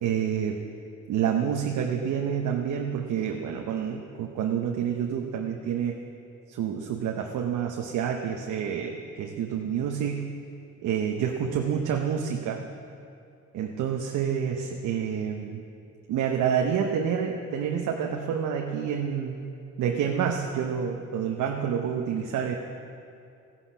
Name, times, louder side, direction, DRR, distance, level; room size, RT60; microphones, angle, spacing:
voice 1, 0.0-0.6 1.1-6.0 6.5-10.3 10.8-12.7 13.5-15.6 16.1-19.4 19.8-22.5, right 8 dB, 75° right, 2 dB, 1.0 m, -28 dB
15.0 x 10.0 x 6.0 m, 2.5 s
cardioid pair, 90°, 30 cm